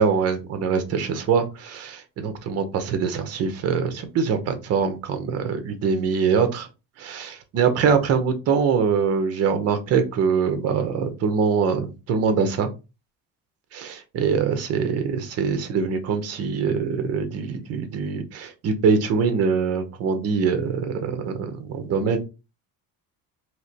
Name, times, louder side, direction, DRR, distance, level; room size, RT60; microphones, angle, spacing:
voice 1, 0.0-6.7 7.0-12.7 13.7-22.2, right 6 dB, 45° right, 8 dB, 0.6 m, -23 dB
3.2 x 2.8 x 2.7 m, 0.28 s
cardioid pair, 175°, 35 cm